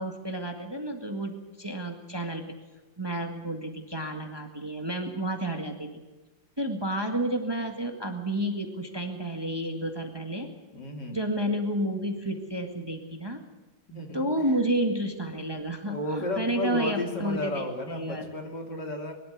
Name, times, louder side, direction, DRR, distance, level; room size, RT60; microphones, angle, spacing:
voice 1, 0.0-2.5 3.0-6.0 6.6-10.5 11.1-13.4 14.1-18.3, right 1 dB, 15° right, 3 dB, 1.8 m, -31 dB
voice 2, 10.7-11.2 13.9-14.3 15.9-19.1, left 2 dB, 65° left, 2 dB, 3.5 m, -33 dB
22.5 x 12.5 x 9.3 m, 1.2 s
omnidirectional pair, 2.0 m